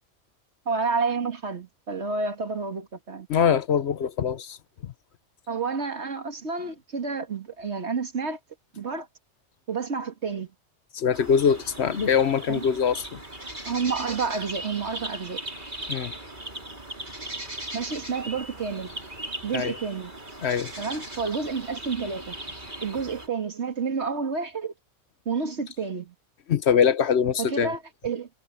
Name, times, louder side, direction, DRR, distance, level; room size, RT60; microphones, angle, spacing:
voice 1, 0.7-3.3 5.5-8.4 8.7-9.1 9.7-10.5 12.5-12.6 13.7-15.4 17.7-18.9 19.4-20.1 20.8-22.4 22.8-24.7 25.3-26.1 27.4-28.3, right 5 dB, 65° right, 2.3 m, -30 dB
voice 2, 3.3-4.6 4.8-4.9 10.9-13.2 15.9-16.1 19.5-19.8 20.4-20.7 26.5-27.7, left 7 dB, 65° left, 1.1 m, -23 dB
sound 1, 11.1-23.3, right 1 dB, 40° right, 5.8 m, -38 dB
omnidirectional pair, 1.2 m